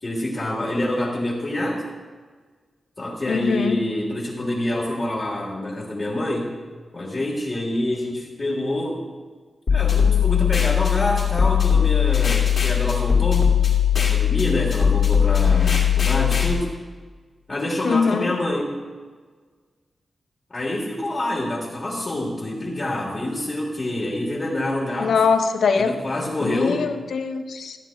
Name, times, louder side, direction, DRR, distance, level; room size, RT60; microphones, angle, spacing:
voice 1, 0.0-1.8 3.0-6.5 6.9-9.0 9.7-13.5 13.9-16.7 17.5-18.8 20.5-25.2 25.8-26.8, left 1 dB, 35° left, -5 dB, 1.6 m, -26 dB
voice 2, 3.3-3.9 17.8-18.3 25.0-25.9 26.4-27.8, left 5 dB, 80° left, 7 dB, 0.6 m, -22 dB
sound 1, 9.7-16.5, left 8 dB, 60° left, 2.3 m, -19 dB
14.0 x 9.1 x 2.4 m, 1.5 s
wide cardioid pair, 105°, 0 cm